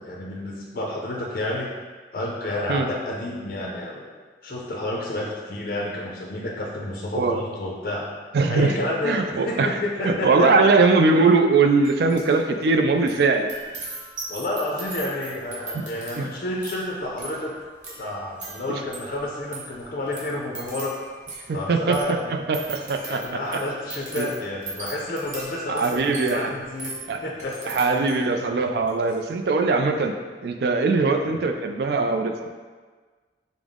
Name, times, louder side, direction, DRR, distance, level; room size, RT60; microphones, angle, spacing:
voice 1, 0.0-1.7 2.1-4.1 4.4-8.1 8.5-10.5 14.3-17.5 18.0-21.0 21.5-22.3 23.0-27.0 27.2-27.7 31.2-31.4, left 1 dB, 50° left, -2 dB, 0.4 m, -30 dB
voice 2, 8.3-8.8 9.0-9.8 10.0-13.5 15.7-15.8 16.2-16.3 18.7-18.8 21.5-22.0 22.3-23.2 23.5-23.6 24.1-24.3 25.7-26.5 27.1-27.2 27.6-30.1 30.4-32.5, right 3 dB, 60° right, 5 dB, 0.3 m, -21 dB
sound 1, 11.8-12.4 12.6-28.4 28.8-29.1, right 2 dB, 40° right, 0.9 m, -40 dB
5.2 x 2.0 x 3.6 m, 1.4 s
head